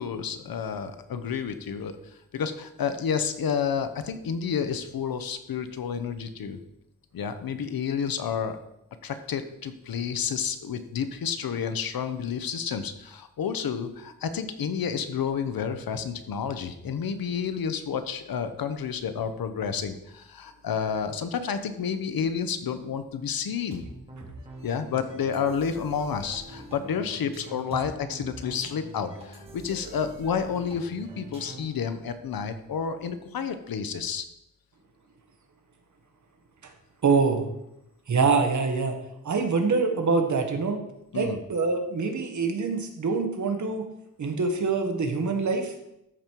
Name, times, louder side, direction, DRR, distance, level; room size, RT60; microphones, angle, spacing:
voice 1, 0.0-6.6 7.1-8.6 9.0-23.8 24.6-34.2 41.1-41.4, left 7 dB, 70° left, 10 dB, 0.9 m, -30 dB
sound 1, 23.7-31.8, right 1 dB, 15° right, 2.5 m, -44 dB
voice 2, 37.0-37.4 38.1-39.0 39.2-40.8 41.1-43.9 44.2-45.7, right 4 dB, 55° right, 5 dB, 1.5 m, -25 dB
13.5 x 5.2 x 4.6 m, 0.84 s
wide cardioid pair, 145°, 36 cm